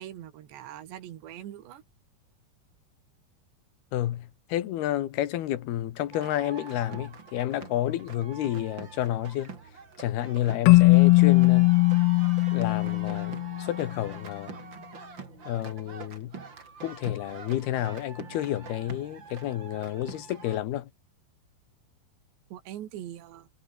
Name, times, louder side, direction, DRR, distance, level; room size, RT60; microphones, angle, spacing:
voice 1, 0.0-1.8 22.5-23.5, right 12 dB, 80° right, 4.2 m, -42 dB
voice 2, 3.9-9.5 10.0-11.7 12.5-14.5 15.5-16.4 16.8-20.9, left 13 dB, 70° left, 3.2 m, -30 dB
sound 1, 6.1-20.6, right 5 dB, 30° right, 3.1 m, -44 dB
Keyboard (musical), 10.7-13.9, left 23 dB, 85° left, 2.2 m, -19 dB
omnidirectional pair, 5.0 m